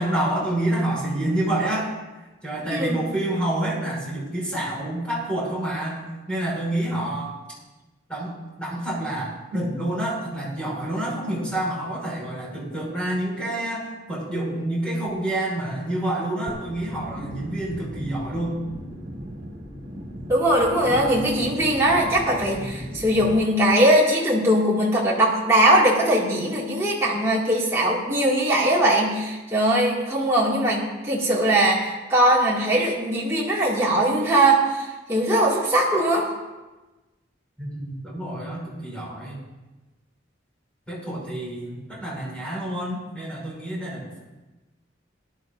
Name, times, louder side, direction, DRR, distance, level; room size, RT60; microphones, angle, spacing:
voice 1, 0.0-1.9 2.4-6.0 6.3-7.4 8.1-8.3 8.6-18.6 37.6-39.4 40.9-44.2, right 1 dB, 5° left, -6 dB, 5.0 m, -28 dB
voice 2, 2.7-3.0 20.3-36.3, right 1 dB, 15° right, -6 dB, 2.1 m, -20 dB
sound 1, 16.5-23.4, equal, 60° right, 2.2 m, -37 dB
20.5 x 11.5 x 2.6 m, 1.1 s
head